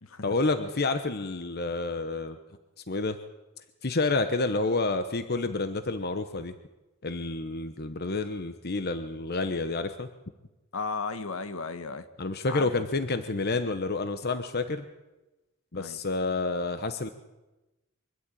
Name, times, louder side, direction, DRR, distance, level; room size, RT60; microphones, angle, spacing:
voice 1, 0.2-2.4 2.9-3.2 3.8-6.5 7.0-10.1 12.2-14.8 15.7-17.1, left 3 dB, 50° left, 9 dB, 1.0 m, -29 dB
voice 2, 10.7-12.1 12.5-12.7 15.7-16.0, left 4 dB, 70° left, 10 dB, 1.4 m, -35 dB
24.0 x 12.5 x 9.1 m, 1.0 s
head